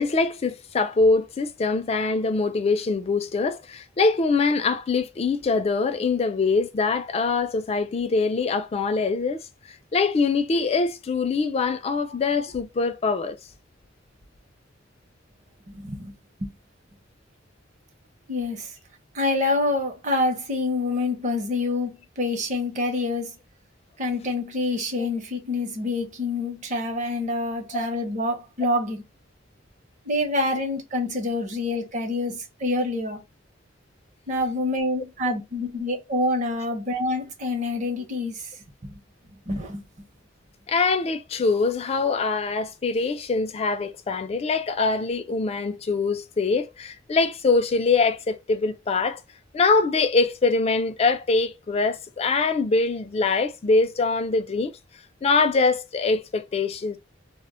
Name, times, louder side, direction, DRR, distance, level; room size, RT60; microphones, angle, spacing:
voice 1, 0.0-9.4 9.9-13.4 25.0-25.1 27.7-27.9 35.3-35.4 40.7-49.2 49.5-54.7 55.2-57.0, left 4 dB, 30° left, 0.3 m, -23 dB
voice 2, 15.7-16.1 16.4-16.5 18.3-18.7 19.1-23.3 24.0-29.0 30.1-33.2 34.3-38.5 38.8-38.9 39.5-39.8, left 2 dB, 40° right, 0.7 m, -26 dB
2.1 x 2.0 x 3.6 m
head